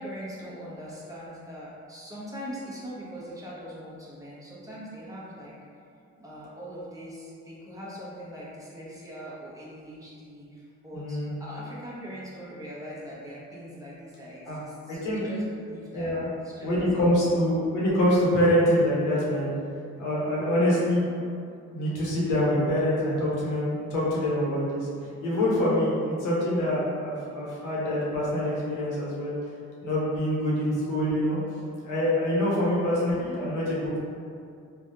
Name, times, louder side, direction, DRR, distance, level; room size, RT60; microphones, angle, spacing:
voice 1, 0.0-5.8 6.2-17.7 26.0-26.2 32.7-33.0, equal, 10° right, -7 dB, 0.8 m, -42 dB
voice 2, 10.9-11.3 14.5-14.6 14.9-15.2 15.9-16.3 16.6-19.5 20.0-21.1 21.7-24.9 25.2-29.3 29.8-31.4 31.8-34.1, left 1 dB, 90° left, -6 dB, 1.0 m, -25 dB
3.3 x 2.3 x 2.7 m, 2.4 s
cardioid pair, 90°, 30 cm